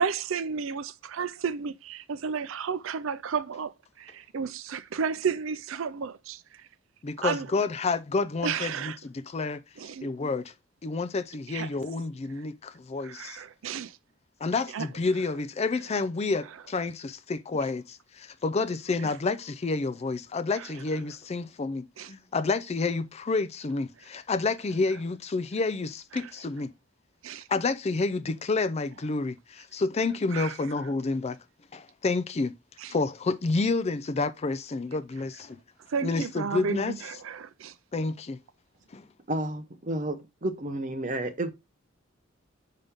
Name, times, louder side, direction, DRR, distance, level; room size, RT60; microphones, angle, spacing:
voice 1, 0.0-6.7 7.2-7.5 8.4-9.0 9.8-10.1 11.5-11.7 13.0-14.0 14.7-14.9 19.0-19.1 20.5-20.7 22.0-22.1 26.1-26.3 27.2-27.5 30.3-30.5 32.8-32.9 35.9-37.7, right 6 dB, 65° right, 0.5 m, -32 dB
voice 2, 7.0-9.6 10.0-10.5 10.8-13.4 14.4-26.7 27.5-31.4 31.7-32.5 32.9-35.6 36.0-36.9 37.9-38.4 38.9-39.1, left 3 dB, 30° left, 0.4 m, -29 dB
voice 3, 39.3-41.5, right 1 dB, 40° right, 0.9 m, -31 dB
5.7 x 5.2 x 3.5 m
head